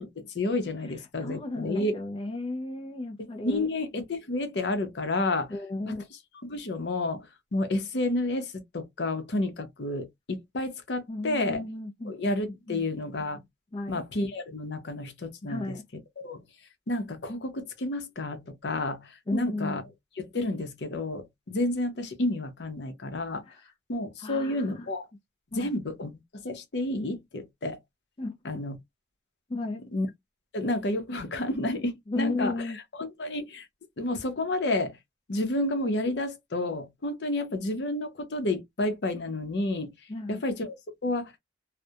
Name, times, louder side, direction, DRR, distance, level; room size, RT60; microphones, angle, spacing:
voice 1, 0.0-2.0 3.4-5.5 5.9-6.0 6.4-7.3 7.5-11.6 12.0-13.4 13.9-15.8 16.2-16.4 16.9-19.8 20.2-23.4 23.9-25.1 25.5-27.8 28.4-28.8 29.9-30.1 30.5-32.5 33.0-33.7 34.0-35.0 35.3-39.9 40.3-40.8 41.0-41.3, left 2 dB, 70° left, 0.6 m, -30 dB
voice 2, 1.2-3.7 5.5-6.1 11.1-12.8 13.7-14.0 15.5-15.8 19.3-19.8 24.2-24.9 25.5-25.7 28.2-28.3 29.5-29.8 32.1-32.8 40.1-40.4, left 2 dB, 30° left, 0.4 m, -34 dB
2.3 x 2.1 x 2.7 m
head